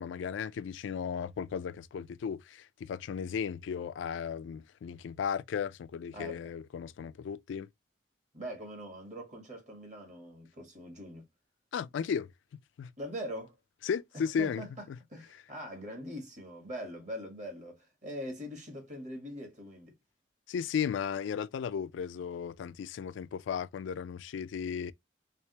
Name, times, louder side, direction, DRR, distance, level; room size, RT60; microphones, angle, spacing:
voice 1, 0.0-7.7 11.7-12.3 12.8-12.9 13.8-15.0 20.5-24.9, left 7 dB, 80° left, 0.3 m, -35 dB
voice 2, 6.1-6.5 8.3-11.3 13.0-13.6 14.1-14.7 15.1-19.9, equal, 40° right, 1.3 m, -42 dB
3.3 x 3.2 x 2.8 m
head